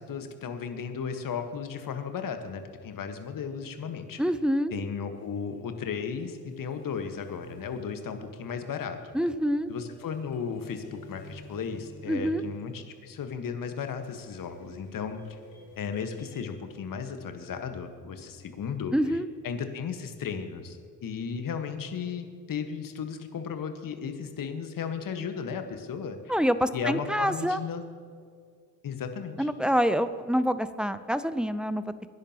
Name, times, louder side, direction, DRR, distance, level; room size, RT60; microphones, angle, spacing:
voice 1, 0.0-4.2 4.7-9.0 9.7-15.4 15.8-18.9 19.4-26.4 26.7-27.8 28.8-29.5, left 6 dB, 45° left, 7 dB, 1.6 m, -35 dB
voice 2, 4.2-4.7 9.1-9.7 12.1-12.4 18.9-19.3 26.3-27.6 29.4-31.8, equal, ahead, 13 dB, 0.6 m, -26 dB
sound 1, 5.1-16.4, right 1 dB, 75° left, 2.8 m, -52 dB
24.0 x 10.5 x 3.0 m, 2.1 s
hypercardioid pair, 55°, 47 cm